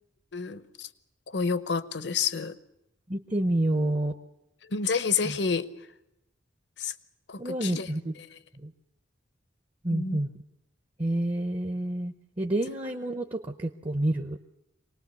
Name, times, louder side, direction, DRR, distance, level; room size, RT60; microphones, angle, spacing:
voice 1, 0.3-0.9 1.3-2.6 4.6-5.7 6.8-6.9 7.3-7.9 9.9-10.2, left 5 dB, 60° left, 14 dB, 0.9 m, -29 dB
voice 2, 3.1-4.1 5.2-5.4 7.4-8.1 8.6-8.7 9.8-10.3 11.0-14.4, right 1 dB, 25° right, 6 dB, 0.8 m, -28 dB
24.5 x 19.0 x 8.3 m, 0.84 s
head